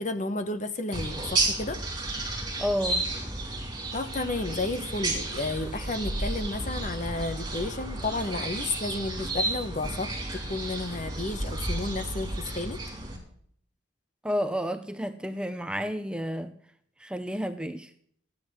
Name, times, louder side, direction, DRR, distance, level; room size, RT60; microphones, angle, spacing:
voice 1, 0.0-1.8 3.9-12.8, left 2 dB, 40° left, 8 dB, 1.1 m, -32 dB
sound 1, 0.9-13.2, right 2 dB, 20° right, 3.9 m, -32 dB
voice 2, 2.6-3.1 14.2-16.5 17.0-17.9, equal, 5° right, 8 dB, 0.6 m, -31 dB
14.5 x 9.8 x 6.4 m, 0.62 s
head